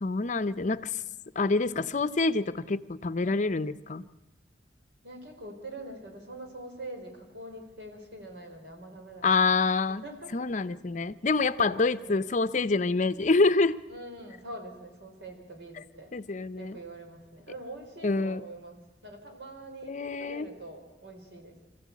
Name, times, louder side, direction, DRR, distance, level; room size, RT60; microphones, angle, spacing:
voice 1, 0.0-1.0 1.4-4.0 9.2-10.0 10.3-13.8 16.1-16.8 18.0-18.4 19.8-20.5, left 3 dB, 45° left, 14 dB, 0.6 m, -26 dB
voice 2, 3.2-3.6 5.0-9.4 10.0-10.4 11.6-12.3 13.9-16.1 16.6-21.6, right 1 dB, 75° right, 3 dB, 4.3 m, -44 dB
26.5 x 14.5 x 8.4 m, 1.2 s
head